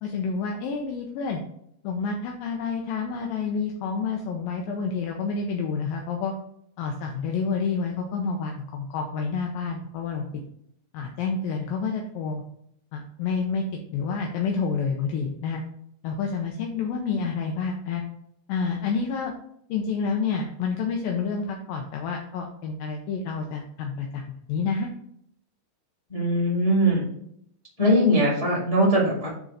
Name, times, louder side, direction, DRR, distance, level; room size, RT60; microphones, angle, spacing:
voice 1, 0.0-1.4 1.8-6.3 6.8-10.3 10.9-12.4 12.9-15.6 16.0-18.0 18.5-19.3 19.7-24.9, left 5 dB, 80° left, 1 dB, 2.2 m, -29 dB
voice 2, 26.1-27.0 27.8-29.3, equal, 35° left, -6 dB, 0.5 m, -21 dB
9.0 x 3.8 x 4.1 m, 0.71 s
omnidirectional pair, 4.7 m